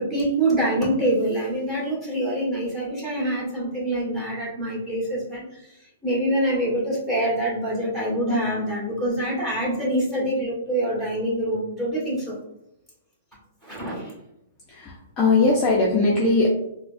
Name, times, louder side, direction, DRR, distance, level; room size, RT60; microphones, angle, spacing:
voice 1, 0.0-5.7 6.0-12.3 13.6-14.1, right 1 dB, 5° right, -6 dB, 1.5 m, -25 dB
voice 2, 14.7-16.5, left 3 dB, 20° left, -4 dB, 0.5 m, -20 dB
4.3 x 2.1 x 2.6 m, 0.84 s
hypercardioid pair, 160°, 0 cm